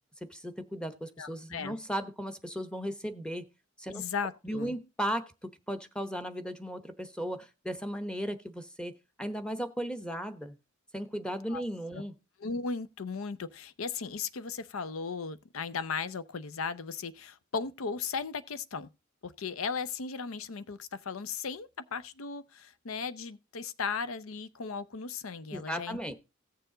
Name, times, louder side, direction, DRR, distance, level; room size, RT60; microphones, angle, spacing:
voice 1, 0.2-3.5 3.8-4.0 4.4-10.5 10.9-12.1 25.5-26.1, equal, 5° left, 0.9 m, -36 dB
voice 2, 1.2-1.8 3.9-4.7 11.5-11.6 11.9-12.0 12.4-18.9 19.2-26.1, left 5 dB, 80° left, 0.7 m, -36 dB
16.0 x 6.8 x 3.8 m
head